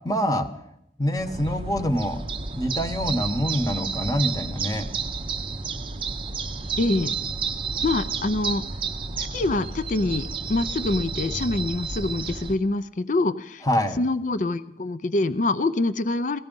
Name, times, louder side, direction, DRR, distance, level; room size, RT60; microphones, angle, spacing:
voice 1, 0.0-0.5 1.0-2.2 2.6-4.9 13.6-14.0, equal, 20° left, 8 dB, 1.0 m, -25 dB
sound 1, 1.2-12.6, right 4 dB, 30° right, 0.6 m, -31 dB
voice 2, 6.8-7.1 7.8-8.6 9.2-13.6 14.0-16.4, left 2 dB, 45° left, 13 dB, 0.5 m, -25 dB
17.5 x 14.5 x 5.3 m, 0.80 s
head